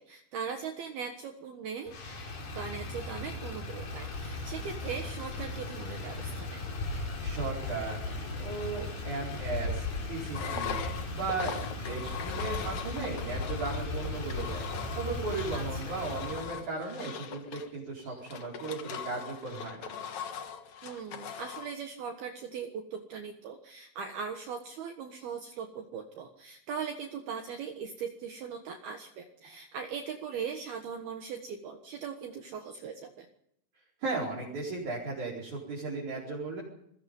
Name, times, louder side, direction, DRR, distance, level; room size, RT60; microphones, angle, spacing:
voice 1, 0.0-2.0 2.6-6.6 15.5-15.9 20.8-33.3, right 6 dB, 65° right, 4 dB, 2.9 m, -40 dB
Motor vehicle (road), 1.9-16.5, left 2 dB, 45° left, 5.8 m, -37 dB
voice 2, 7.2-8.0 8.3-10.8 11.1-19.9 34.0-36.6, right 3 dB, 40° right, -4 dB, 5.7 m, -36 dB
Engine, 10.3-21.7, left 8 dB, 70° left, 1.7 m, -41 dB
27.5 x 22.0 x 5.5 m, 0.73 s
omnidirectional pair, 5.7 m